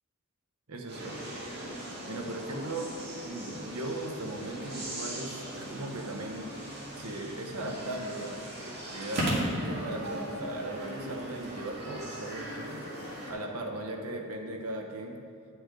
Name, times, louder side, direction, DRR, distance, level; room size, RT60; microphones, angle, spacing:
voice 1, 0.7-1.3 2.1-2.9 3.3-6.6 7.0-12.8 13.3-15.2, right 1 dB, 80° right, 2 dB, 1.0 m, -38 dB
sound 1, 0.9-13.3, right 1 dB, 50° right, 2.0 m, -38 dB
10.0 x 6.1 x 3.8 m, 2.4 s
head